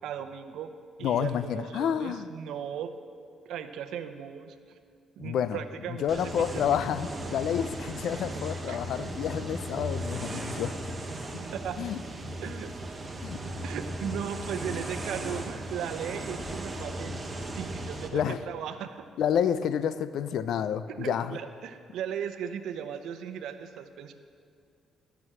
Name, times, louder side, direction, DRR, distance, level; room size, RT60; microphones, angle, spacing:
voice 1, 0.0-0.7 1.0-2.9 3.5-4.6 5.2-6.6 8.7-8.8 11.5-11.8 12.4-12.7 13.6-17.2 17.5-19.1 21.0-24.1, right 8 dB, 80° right, 9 dB, 0.7 m, -37 dB
voice 2, 1.0-2.3 5.2-5.6 5.9-10.7 11.8-12.0 13.2-13.4 18.1-18.4 19.2-21.3, left 8 dB, 75° left, 14 dB, 0.5 m, -29 dB
sound 1, 6.1-18.1, right 1 dB, 25° right, 1.3 m, -37 dB
sound 2, 8.8-17.9, equal, 15° left, 2.0 m, -55 dB
14.0 x 6.2 x 7.5 m, 2.4 s
cardioid pair, 90°, 0 cm